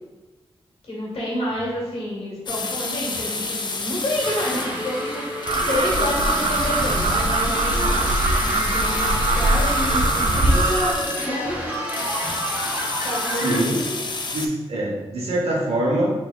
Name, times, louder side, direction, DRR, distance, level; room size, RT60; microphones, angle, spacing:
voice 1, 0.8-8.1 8.4-11.7 13.0-14.1, left 1 dB, 75° left, -5 dB, 1.4 m, -29 dB
sound 1, 2.5-14.5, left 3 dB, 50° left, 0.4 m, -30 dB
sound 2, 4.2-13.6, equal, 20° right, 1.0 m, -29 dB
sound 3, 5.5-10.9, right 2 dB, 65° right, 0.4 m, -22 dB
voice 2, 13.4-13.7 14.3-16.1, right 1 dB, 85° right, -2 dB, 0.9 m, -23 dB
4.3 x 3.3 x 2.3 m, 1.2 s
cardioid pair, 65°, 10 cm